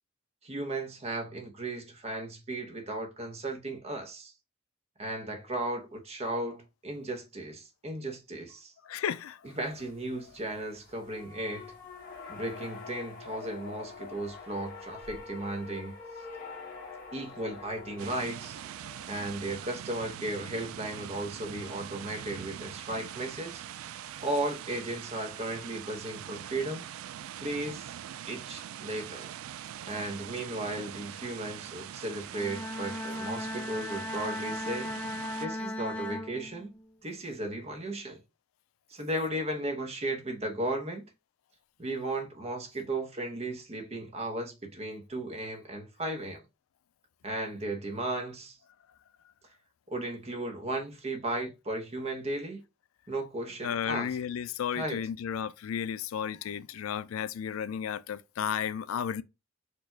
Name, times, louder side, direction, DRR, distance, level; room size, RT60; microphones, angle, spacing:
voice 1, 0.4-4.3 5.0-8.7 9.4-11.7 12.3-16.0 17.1-18.6 19.1-23.6 24.2-26.9 27.4-27.9 28.3-29.3 29.9-34.9 35.4-36.7 37.0-38.2 38.9-41.0 41.8-46.4 47.2-48.6 49.9-52.6 53.1-54.2 54.8-55.0, right 1 dB, 30° right, 0.9 m, -35 dB
voice 2, 8.9-9.5 53.6-59.2, left 8 dB, 85° left, 0.4 m, -33 dB
sound 1, 9.4-19.6, left 4 dB, 45° left, 1.6 m, -46 dB
sound 2, 18.0-35.5, right 10 dB, 90° right, 0.3 m, -43 dB
Bowed string instrument, 32.2-36.9, left 1 dB, 5° left, 0.5 m, -37 dB
4.5 x 2.4 x 4.4 m
head